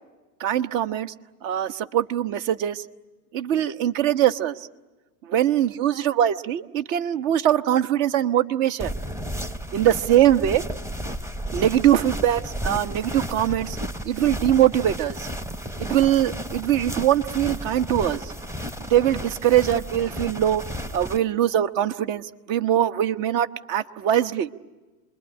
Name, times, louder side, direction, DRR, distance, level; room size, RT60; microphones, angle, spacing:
voice 1, 0.4-1.1 1.4-2.9 3.3-4.7 5.2-8.9 9.7-10.6 11.5-13.8 14.0-15.3 15.8-18.3 18.9-20.6 20.9-24.5, right 11 dB, 55° right, 11 dB, 1.2 m, -22 dB
sound 1, 8.8-21.2, equal, 5° right, 0.8 m, -33 dB
27.5 x 21.5 x 10.0 m, 1.2 s
hypercardioid pair, 110°, 47 cm